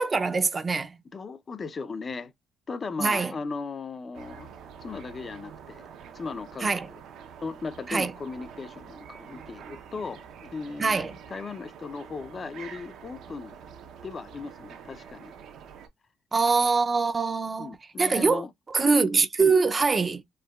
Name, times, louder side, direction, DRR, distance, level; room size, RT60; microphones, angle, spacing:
voice 1, 0.0-1.0 3.0-3.3 6.6-6.9 7.9-8.1 10.8-11.1 16.3-18.4 18.7-20.2, right 4 dB, 30° right, 0.4 m, -24 dB
voice 2, 1.1-2.3 2.7-4.5 4.8-5.9 6.1-6.7 7.4-10.2 10.5-13.6 14.0-15.3 17.6-18.5 19.4-19.6, left 4 dB, 40° left, 0.5 m, -37 dB
sound 1, 4.1-15.9, right 7 dB, 80° right, 0.6 m, -46 dB
4.4 x 2.1 x 2.3 m
cardioid pair, 90°, 0 cm